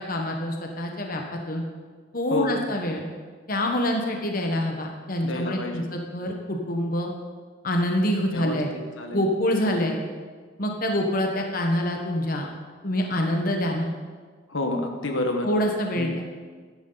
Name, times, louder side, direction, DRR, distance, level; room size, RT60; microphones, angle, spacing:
voice 1, 0.0-1.6 2.1-3.0 3.5-7.1 7.6-8.7 9.1-10.0 10.6-12.5 12.8-13.9 15.4-16.1, left 1 dB, 45° left, 2 dB, 1.1 m, -26 dB
voice 2, 2.3-2.6 5.2-5.9 8.3-9.3 9.6-9.8 14.5-15.5 16.0-16.1, left 2 dB, 80° left, 4 dB, 1.3 m, -29 dB
13.0 x 10.5 x 3.9 m, 1.5 s
head